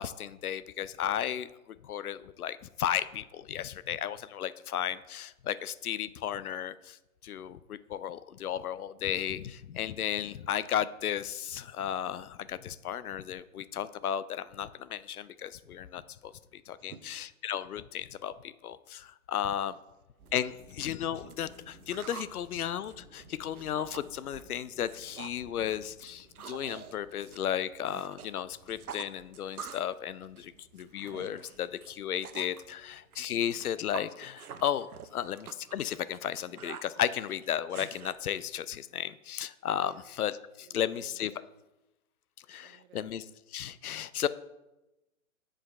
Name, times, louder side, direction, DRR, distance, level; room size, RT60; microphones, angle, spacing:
voice 1, 0.0-1.5 1.8-7.0 7.2-16.3 16.7-19.8 20.3-40.3 40.6-41.3 42.5-44.3, left 10 dB, 85° left, 16 dB, 0.5 m, -34 dB
voice 2, 16.8-17.2 39.8-40.0 40.6-41.5 42.6-43.0, right 9 dB, 50° right, 11 dB, 0.6 m, -54 dB
sound 1, 20.2-34.0, right 1 dB, 30° right, 2.0 m, -59 dB
sound 2, 20.3-20.4 20.7-22.3 22.7-24.1 24.4-24.6 24.9-25.4 25.7-28.3 28.6-29.9 30.2-32.6 33.1-38.1, right 8 dB, 85° right, 0.7 m, -46 dB
7.6 x 5.0 x 4.2 m, 0.98 s
hypercardioid pair, 130°, 43 cm